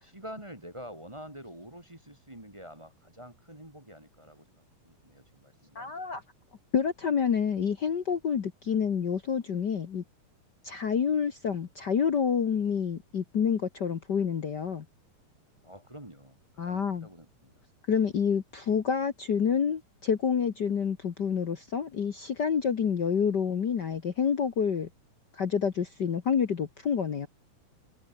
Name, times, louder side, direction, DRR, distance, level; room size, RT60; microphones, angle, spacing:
voice 1, 0.0-5.9 8.6-8.9 15.6-17.6, equal, 10° right, 2.0 m, -47 dB
voice 2, 5.7-6.2 6.7-10.0 10.6-14.8 16.6-17.1 17.9-24.9 25.3-27.3, left 7 dB, 65° left, 1.0 m, -28 dB
omnidirectional pair, 3.9 m